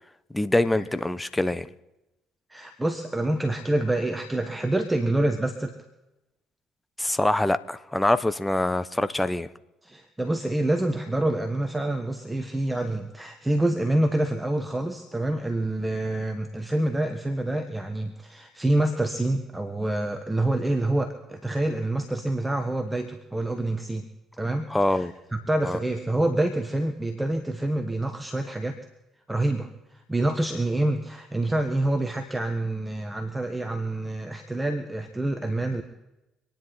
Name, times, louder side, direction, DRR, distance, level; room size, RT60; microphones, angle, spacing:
voice 1, 0.3-1.7 7.0-9.5 24.7-25.1 25.6-25.8, left 1 dB, 10° left, 13 dB, 1.0 m, -24 dB
voice 2, 2.5-5.7 9.8-24.1 24.4-28.8 29.3-29.7 30.1-35.8, right 1 dB, 10° right, 6 dB, 1.5 m, -27 dB
26.0 x 10.0 x 4.2 m, 0.96 s
hypercardioid pair, 55°, 0 cm